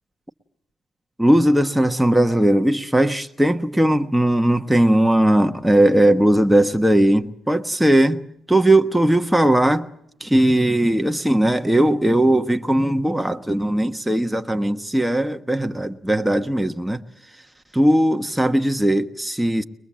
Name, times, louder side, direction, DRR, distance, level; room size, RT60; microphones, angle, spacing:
voice 1, 1.2-8.2 8.5-9.9 10.2-17.0 17.7-19.6, right 1 dB, 5° right, 1.2 m, -18 dB
22.5 x 22.0 x 7.4 m
cardioid pair, 85°, 0 cm